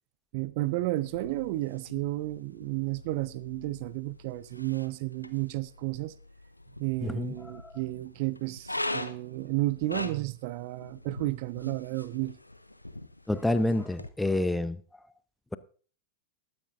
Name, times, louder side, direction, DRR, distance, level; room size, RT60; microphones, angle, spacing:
voice 1, 0.3-6.1 6.8-12.4, right 19 dB, 50° right, 0.5 m, -32 dB
sound 1, 1.0-14.1, left 1 dB, 85° left, 0.7 m, -42 dB
voice 2, 7.0-7.7 13.3-14.8, left 1 dB, 5° left, 0.6 m, -28 dB
20.0 x 9.6 x 2.6 m
figure-of-eight pair, 90°, 0 cm